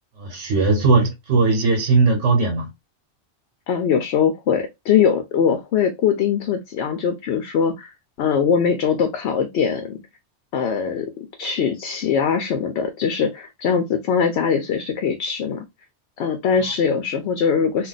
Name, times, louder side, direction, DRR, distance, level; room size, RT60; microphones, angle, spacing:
voice 1, 0.2-2.7, right 3 dB, 85° right, 1.2 m, -18 dB
voice 2, 3.7-7.9 8.2-10.0 10.5-11.1 11.4-15.6 16.2-17.9, left 7 dB, 70° left, 0.8 m, -21 dB
2.4 x 2.3 x 3.9 m
omnidirectional pair, 1.2 m